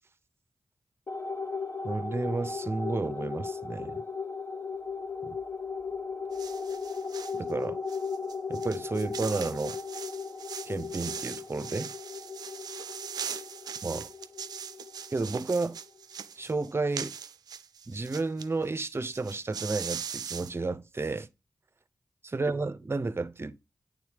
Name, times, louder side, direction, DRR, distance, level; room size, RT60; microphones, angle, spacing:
sound 1, 1.1-15.8, left 5 dB, 45° left, 0.9 m, -37 dB
voice 1, 1.8-4.0 5.3-5.4 7.4-7.8 8.5-9.8 10.7-11.9 13.8-14.1 15.1-15.8 16.4-17.2 17.9-21.3 22.3-23.6, right 3 dB, 35° right, 0.6 m, -32 dB
sound 2, 6.3-7.4 7.9-18.5 18.8-18.9 19.1-20.5, right 7 dB, 80° right, 0.3 m, -40 dB
8.7 x 3.6 x 3.3 m
cardioid pair, 40°, 7 cm